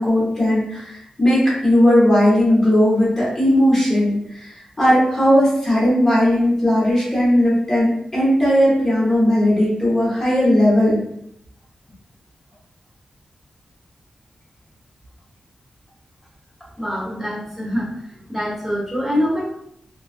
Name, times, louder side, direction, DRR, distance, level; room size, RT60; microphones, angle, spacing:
voice 1, 0.0-11.0, left 1 dB, 20° left, -7 dB, 1.0 m, -17 dB
voice 2, 16.8-19.4, equal, 10° right, -8 dB, 1.0 m, -25 dB
2.3 x 2.3 x 2.4 m, 0.72 s
wide cardioid pair, 125°, 2 cm